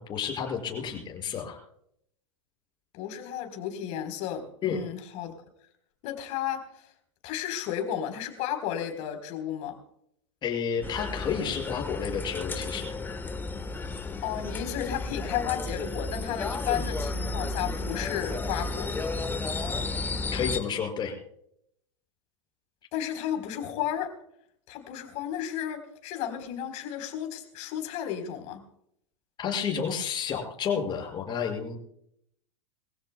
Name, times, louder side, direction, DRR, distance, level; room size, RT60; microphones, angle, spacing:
voice 1, 0.0-1.6 4.6-4.8 10.4-12.9 20.3-21.2 29.4-31.8, left 7 dB, 30° left, 5.8 m, -31 dB
voice 2, 2.9-5.3 6.0-6.7 7.2-9.8 14.2-18.9 22.9-24.2 24.7-28.6, left 10 dB, 45° left, 3.9 m, -33 dB
sound 1, 10.8-20.6, left 3 dB, 10° left, 1.3 m, -33 dB
24.5 x 16.0 x 2.2 m
hypercardioid pair, 110°, 16 cm